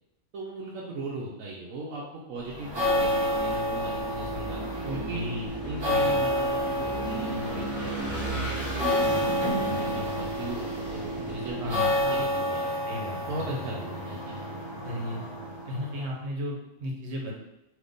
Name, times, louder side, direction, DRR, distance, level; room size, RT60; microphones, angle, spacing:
voice 1, 0.3-5.3 5.6-8.7 9.2-12.7 13.2-14.4, right 2 dB, 90° right, -4 dB, 1.1 m, -38 dB
Vehicle / Engine, 2.5-12.3, right 1 dB, 15° left, 0.7 m, -38 dB
sound 1, 2.5-16.1, equal, 25° right, 0.7 m, -29 dB
voice 2, 4.8-5.5 5.9-6.2 11.6-12.3 12.9-13.2 13.5-13.6 14.8-15.2 15.7-17.4, left 1 dB, 60° right, -2 dB, 1.2 m, -35 dB
3.8 x 2.9 x 3.5 m, 0.89 s
omnidirectional pair, 1.4 m